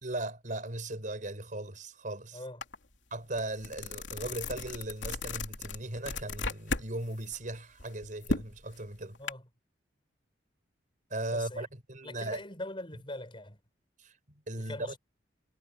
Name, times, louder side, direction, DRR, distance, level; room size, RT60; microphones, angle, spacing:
voice 1, 0.0-2.4 3.1-9.2 11.1-12.4 14.0-14.1 14.5-14.9, right 2 dB, 45° right, 5.2 m, -37 dB
sound 1, 2.6-2.7 3.1-6.9 7.2-9.3, left 3 dB, 85° left, 3.0 m, -36 dB
voice 2, 11.3-11.7 12.0-13.6 14.6-15.0, left 1 dB, 30° left, 4.8 m, -42 dB
head